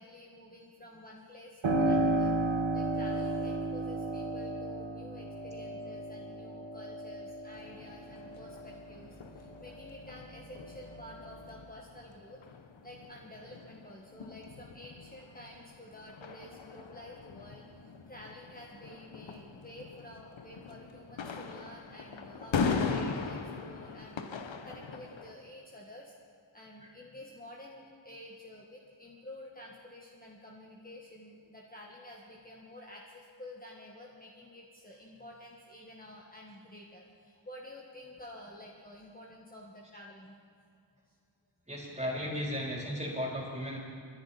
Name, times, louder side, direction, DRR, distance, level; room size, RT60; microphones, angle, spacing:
voice 1, 0.0-2.4 2.7-12.4 12.8-26.1 26.5-40.4, left 1 dB, 20° left, -3 dB, 1.8 m, -50 dB
Piano, 1.6-10.1 10.5-11.5, right 2 dB, 80° right, 1.7 m, -33 dB
sound 1, 7.5-25.3, left 5 dB, 75° left, 1.1 m, -40 dB
voice 2, 41.7-43.8, equal, 15° right, -3 dB, 4.1 m, -35 dB
23.5 x 10.5 x 4.3 m, 2.2 s
cardioid pair, 55°, 46 cm